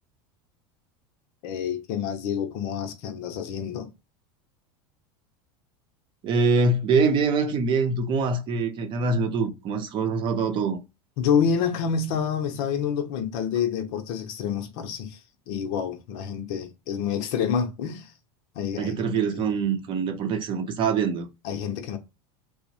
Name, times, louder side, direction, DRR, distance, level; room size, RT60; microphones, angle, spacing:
voice 1, 1.4-3.9 11.2-18.1 18.5-19.1 19.3-19.6 21.4-22.0, left 7 dB, 60° left, 0.7 m, -28 dB
voice 2, 6.2-10.8 18.8-21.3, right 4 dB, 40° right, 0.6 m, -24 dB
2.8 x 2.0 x 2.8 m
supercardioid pair, 130°, 14 cm